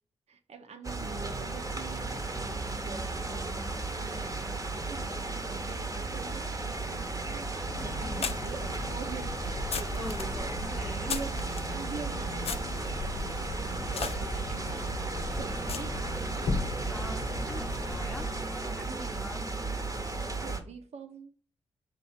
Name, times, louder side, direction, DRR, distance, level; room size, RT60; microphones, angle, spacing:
voice 1, 0.3-16.1 18.9-19.3 19.9-21.3, right 6 dB, 65° right, 0.7 m, -45 dB
sound 1, 0.8-20.6, right 3 dB, 30° right, 0.8 m, -35 dB
voice 2, 3.2-3.8 8.0-8.5 10.0-11.2 16.9-19.5, equal, 5° left, 0.5 m, -43 dB
sound 2, 7.1-7.2 8.2-11.7 12.4-16.4, left 6 dB, 55° left, 0.5 m, -39 dB
sound 3, 7.7-18.4, left 4 dB, 85° left, 0.8 m, -39 dB
4.5 x 2.7 x 4.2 m
supercardioid pair, 45°, 12 cm